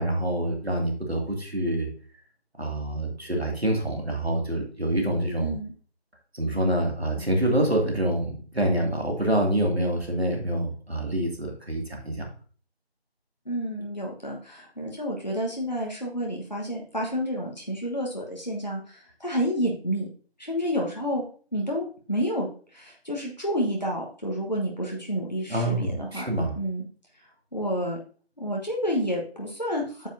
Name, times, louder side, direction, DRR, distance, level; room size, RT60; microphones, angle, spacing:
voice 1, 0.0-1.9 2.6-5.5 6.3-12.3 25.5-26.5, right 1 dB, 70° right, 1 dB, 2.5 m, -26 dB
voice 2, 5.4-5.7 13.5-20.1 20.4-21.3 21.5-22.5 22.7-26.3 26.6-26.8 27.5-28.0 28.4-30.1, equal, 40° left, -2 dB, 1.3 m, -29 dB
8.9 x 6.8 x 2.7 m, 0.42 s
figure-of-eight pair, 180°, 32 cm